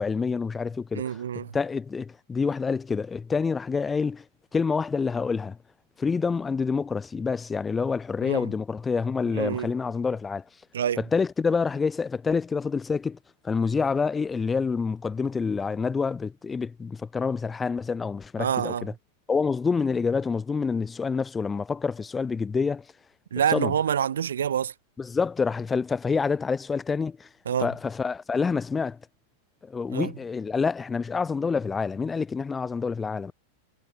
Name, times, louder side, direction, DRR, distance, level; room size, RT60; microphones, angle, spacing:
voice 1, 0.0-1.2 1.5-4.2 4.5-5.6 6.0-10.4 11.0-13.2 13.4-18.9 19.3-22.8 23.5-23.7 25.0-27.3 27.6-29.0 29.6-33.3, left 5 dB, 15° left, 4.2 m, -27 dB
voice 2, 0.9-1.5 8.2-8.4 9.3-9.7 10.7-11.0 18.4-18.8 23.3-24.7 27.4-27.7 29.9-30.1, right 9 dB, 65° right, 3.2 m, -26 dB
figure-of-eight pair, 90°, 0 cm